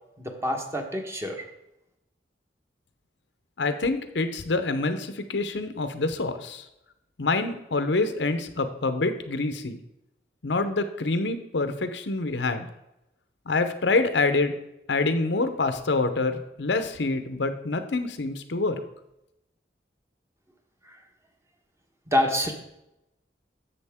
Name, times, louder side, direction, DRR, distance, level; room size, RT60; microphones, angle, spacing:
voice 1, 0.2-1.4 20.9-21.0 22.1-22.5, left 1 dB, 15° right, 3 dB, 1.2 m, -27 dB
voice 2, 3.6-6.7 7.2-9.8 10.4-12.7 13.5-14.5 14.9-18.8, left 3 dB, 80° left, 9 dB, 0.8 m, -26 dB
11.0 x 7.6 x 3.6 m, 0.87 s
head